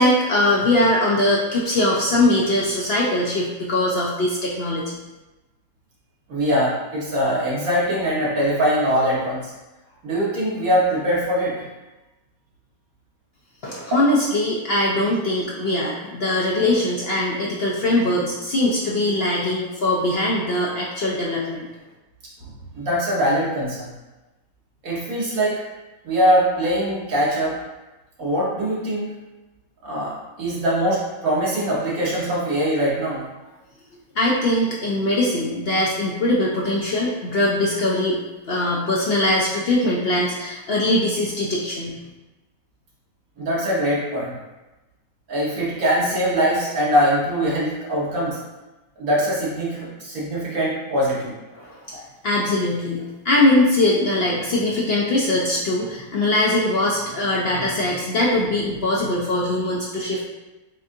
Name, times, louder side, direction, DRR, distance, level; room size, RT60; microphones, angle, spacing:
voice 1, 0.0-4.9 13.6-21.7 34.2-38.2 38.5-41.9 51.5-51.8 52.2-60.2, left 1 dB, 60° left, -4 dB, 0.6 m, -21 dB
voice 2, 6.3-9.5 10.0-11.5 22.4-23.9 24.8-25.6 26.0-27.6 28.2-29.1 29.8-33.2 43.4-44.3 45.3-48.4 49.0-51.3 51.9-52.0, equal, 65° right, -7 dB, 1.7 m, -22 dB
6.9 x 2.5 x 2.7 m, 1.1 s
omnidirectional pair, 1.6 m